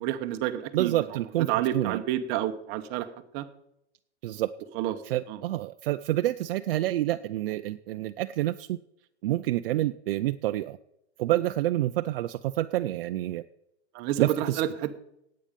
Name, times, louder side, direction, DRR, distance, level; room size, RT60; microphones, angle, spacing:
voice 1, 0.0-1.0 1.5-3.1 3.3-3.5 4.8-4.9 5.3-5.4 13.9-14.7, right 12 dB, 30° right, 8 dB, 0.9 m, -29 dB
voice 2, 0.7-2.0 4.2-4.5 5.0-8.8 9.2-10.8 11.2-13.4 14.2-14.6, right 15 dB, 55° right, 9 dB, 0.5 m, -28 dB
17.5 x 8.8 x 5.2 m, 0.81 s
supercardioid pair, 155°, 35 cm